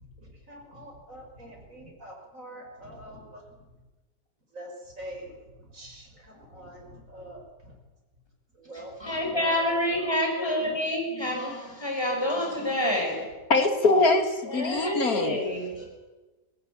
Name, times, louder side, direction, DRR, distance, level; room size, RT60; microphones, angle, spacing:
voice 1, 0.2-3.4 4.5-7.7 8.5-9.5 9.9-10.1, right 1 dB, 50° right, 1 dB, 6.4 m, -45 dB
voice 2, 8.7-13.3 14.4-15.9, left 1 dB, 15° left, 1 dB, 5.9 m, -28 dB
voice 3, 13.5-15.3, left 3 dB, 55° left, 7 dB, 2.8 m, -23 dB
21.5 x 20.5 x 9.7 m, 1.2 s
omnidirectional pair, 1.8 m